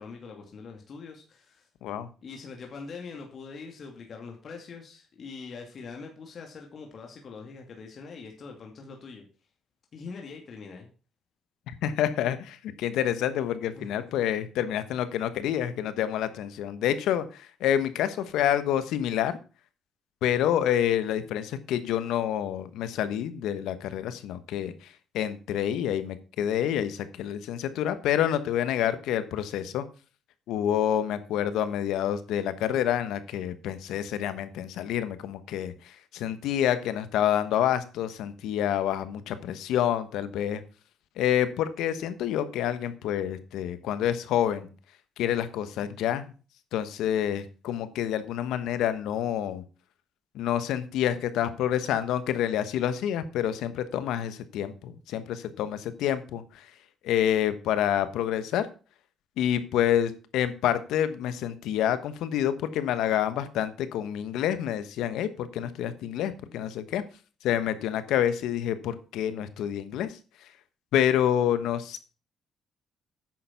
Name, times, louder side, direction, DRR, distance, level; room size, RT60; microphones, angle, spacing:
voice 1, 0.0-1.7 2.2-9.2 9.9-10.9 13.8-13.9, left 4 dB, 55° left, 2 dB, 2.4 m, -43 dB
voice 2, 11.7-19.4 20.2-24.7 25.1-29.8 30.5-40.6 41.2-44.7 45.2-46.3 46.7-49.6 50.3-56.6 57.0-58.7 59.4-67.0 67.4-70.2 70.9-72.0, left 10 dB, 90° left, 12 dB, 1.2 m, -28 dB
10.0 x 6.9 x 5.9 m, 0.36 s
cardioid pair, 90°, 0 cm